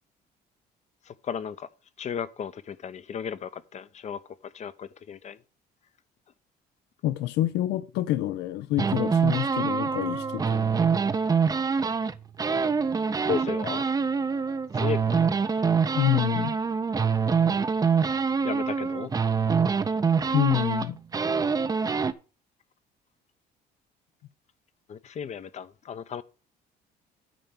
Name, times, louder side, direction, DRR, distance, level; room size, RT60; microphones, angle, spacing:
voice 1, 1.1-1.7 2.0-5.4 13.3-13.8 14.7-15.2 18.4-19.1 24.9-26.2, left 7 dB, 45° left, 0.7 m, -34 dB
voice 2, 7.0-10.6 15.9-16.6 20.3-21.0, left 15 dB, 85° left, 0.6 m, -27 dB
sound 1, 8.8-12.1 12.4-22.1, right 5 dB, 20° right, 0.6 m, -25 dB
9.2 x 4.5 x 6.8 m
cardioid pair, 110°, 17 cm